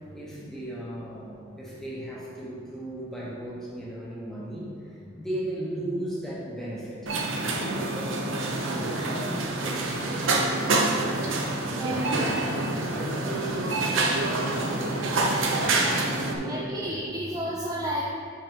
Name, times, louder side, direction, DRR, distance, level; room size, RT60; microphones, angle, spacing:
voice 1, 0.1-10.8 12.9-17.0, right 1 dB, ahead, -7 dB, 1.2 m, -37 dB
sound 1, 7.1-16.4, right 2 dB, 75° right, 0.7 m, -27 dB
voice 2, 11.7-12.2 16.4-18.0, equal, 20° right, -4 dB, 0.5 m, -31 dB
6.1 x 4.0 x 5.2 m, 2.1 s
head